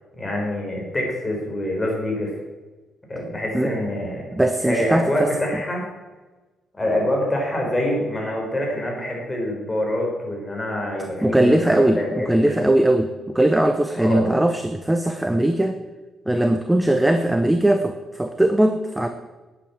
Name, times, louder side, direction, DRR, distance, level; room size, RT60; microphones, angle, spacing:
voice 1, 0.1-2.3 3.1-4.3 4.6-5.9 6.8-12.6 14.0-14.3, left 1 dB, 20° left, -1 dB, 5.0 m, -25 dB
voice 2, 4.3-5.3 11.2-15.8 16.3-19.1, right 1 dB, 10° right, 8 dB, 0.8 m, -20 dB
10.5 x 8.8 x 7.3 m, 1.2 s
cardioid pair, 90°, 0 cm